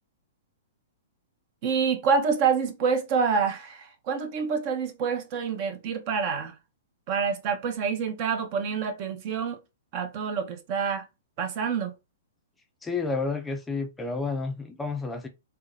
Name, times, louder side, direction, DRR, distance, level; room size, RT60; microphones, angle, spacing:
voice 1, 1.6-6.5 7.1-9.6 9.9-11.1 11.4-11.9, right 6 dB, 45° right, 0.7 m, -27 dB
voice 2, 12.8-15.3, left 4 dB, 10° left, 0.4 m, -30 dB
3.7 x 2.1 x 2.5 m
hypercardioid pair, 120°, 0 cm